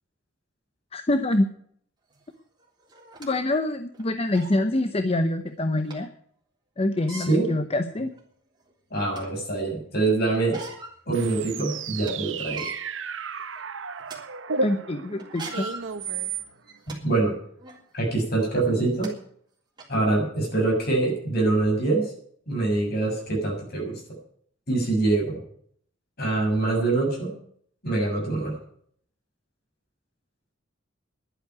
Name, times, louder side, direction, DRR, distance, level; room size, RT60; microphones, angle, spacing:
voice 1, 0.9-1.5 3.2-6.1 6.8-8.1 14.6-15.6, left 1 dB, 30° left, 9 dB, 0.8 m, -25 dB
sound 1, 2.1-2.2 2.9-3.3 3.9-4.0 4.3-4.6 5.9-6.0 6.9-7.3 8.1-8.2 8.7-9.4 10.3-11.0 11.4-11.5 11.8-12.1 12.4-12.8 13.4-13.6 14.0-14.2 15.2-17.0 17.6-17.8 18.6-18.7 19.0-19.1 19.8-19.9, right 6 dB, 25° right, 3.4 m, -37 dB
voice 2, 7.1-7.5 8.9-10.6 11.1-12.7 16.9-17.4 17.9-19.1 19.9-22.1 22.5-24.0 24.7-25.4 26.2-27.3 27.8-28.6, right 2 dB, 55° left, 0 dB, 6.9 m, -24 dB
sound 2, 11.1-16.8, right 4 dB, 80° right, 1.0 m, -34 dB
11.5 x 9.6 x 9.4 m, 0.63 s
head